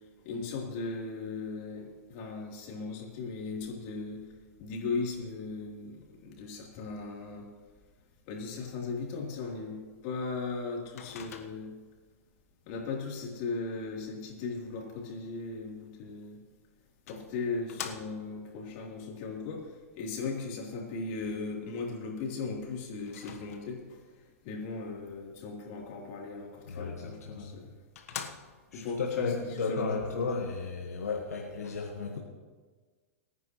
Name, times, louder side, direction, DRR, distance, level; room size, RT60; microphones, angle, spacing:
voice 1, 0.2-4.2 4.6-7.5 8.3-11.7 12.7-16.4 17.1-24.0 24.4-27.7 28.7-30.3, left 4 dB, 50° left, -2 dB, 3.5 m, -37 dB
Microwave oven, 11.0-11.9 16.2-16.3 17.1-18.4 23.1-24.0 27.1-27.2 27.6-27.7 28.0-28.8, left 8 dB, 70° left, 1.3 m, -44 dB
voice 2, 26.7-27.5 28.7-32.2, left 4 dB, 90° left, 0 dB, 1.6 m, -34 dB
23.0 x 9.7 x 3.2 m, 1.4 s
hypercardioid pair, 115°, 8 cm